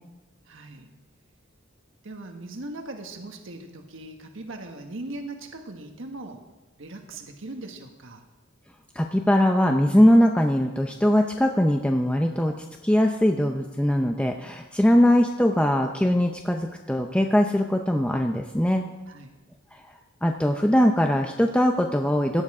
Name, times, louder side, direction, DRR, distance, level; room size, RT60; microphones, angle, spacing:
voice 1, 0.5-0.9 2.0-6.4 6.8-8.2 14.8-15.0 19.1-19.4, right 2 dB, 65° right, 4 dB, 1.5 m, -39 dB
voice 2, 9.0-18.8 19.7-19.8 20.2-22.4, equal, 5° left, 3 dB, 0.6 m, -21 dB
17.5 x 10.0 x 4.9 m, 1.1 s
head